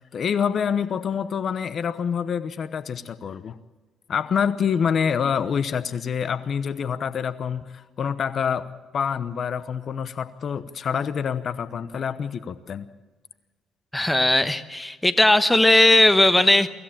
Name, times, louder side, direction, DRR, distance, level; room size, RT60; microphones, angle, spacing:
voice 1, 0.1-3.5 4.1-12.8, left 7 dB, 45° left, 13 dB, 0.9 m, -26 dB
voice 2, 13.9-16.7, left 1 dB, 10° left, 10 dB, 1.1 m, -17 dB
24.0 x 15.5 x 8.8 m, 1.3 s
cardioid pair, 125°, 0 cm